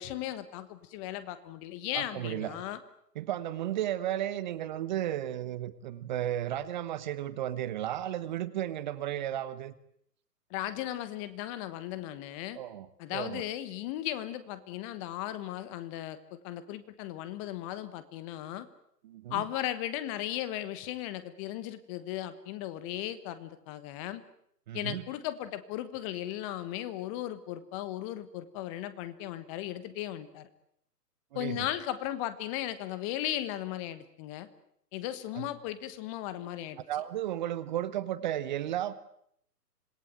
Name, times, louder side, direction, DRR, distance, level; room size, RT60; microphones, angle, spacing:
voice 1, 0.0-2.8 10.5-12.6 13.0-18.7 19.3-24.2 24.7-30.5 31.3-34.5 34.9-36.8, left 13 dB, 20° left, 14 dB, 1.2 m, -36 dB
voice 2, 1.9-2.6 3.1-9.7 12.5-13.4 19.0-19.4 24.7-25.0 31.3-31.7 35.3-35.5 36.9-38.9, right 12 dB, 30° right, 15 dB, 1.0 m, -34 dB
26.5 x 19.5 x 9.1 m, 0.71 s
figure-of-eight pair, 135°, 49 cm